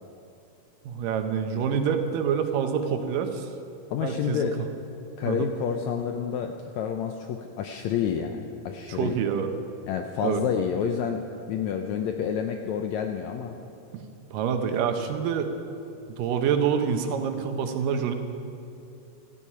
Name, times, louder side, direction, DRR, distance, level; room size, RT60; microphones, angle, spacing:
voice 1, 0.9-3.5 4.0-4.5 5.3-5.5 8.9-9.5 10.2-10.4 14.3-15.5 16.2-18.1, right 7 dB, 80° right, 7 dB, 2.6 m, -26 dB
voice 2, 3.9-4.6 5.2-9.1 9.9-13.5, left 7 dB, 80° left, 5 dB, 1.6 m, -29 dB
16.0 x 14.0 x 5.7 m, 2.6 s
omnidirectional pair, 3.9 m